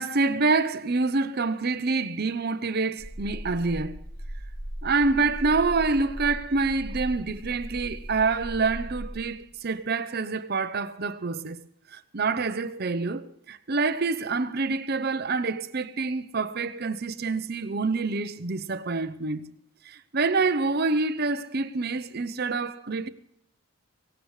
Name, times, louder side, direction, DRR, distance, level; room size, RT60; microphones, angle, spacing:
voice 1, 0.0-4.0 4.8-11.6 11.9-19.4 19.8-23.1, right 3 dB, 45° right, 0.7 m, -27 dB
sound 1, 3.0-9.5, equal, 50° left, 4.0 m, -38 dB
18.0 x 18.0 x 3.3 m
head